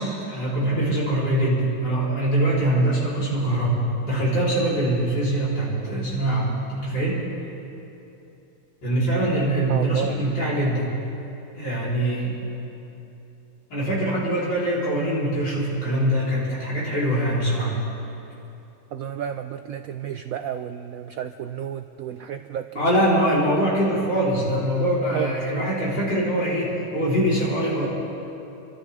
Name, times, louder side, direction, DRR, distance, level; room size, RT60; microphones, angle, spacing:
voice 1, 0.0-7.2 8.8-10.9 11.5-12.4 13.7-17.8 22.8-27.9, right 1 dB, 75° left, -8 dB, 4.9 m, -23 dB
voice 2, 9.7-10.2 18.9-23.1 25.1-25.7, right 9 dB, 80° right, 8 dB, 0.7 m, -32 dB
29.5 x 12.5 x 3.6 m, 2.8 s
omnidirectional pair, 2.0 m